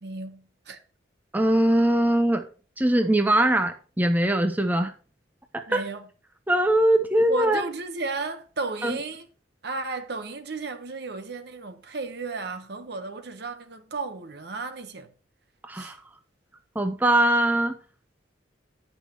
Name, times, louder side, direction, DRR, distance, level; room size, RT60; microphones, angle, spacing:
voice 1, 0.0-0.8 5.7-6.1 7.3-9.3 9.6-15.1 15.7-16.0, right 3 dB, 55° right, 0.8 m, -34 dB
voice 2, 1.3-2.5 2.8-4.9 5.5-5.8 6.5-7.6 8.8-9.0 15.7-16.0 16.8-17.8, right 1 dB, 10° right, 0.5 m, -21 dB
8.8 x 5.5 x 4.4 m
head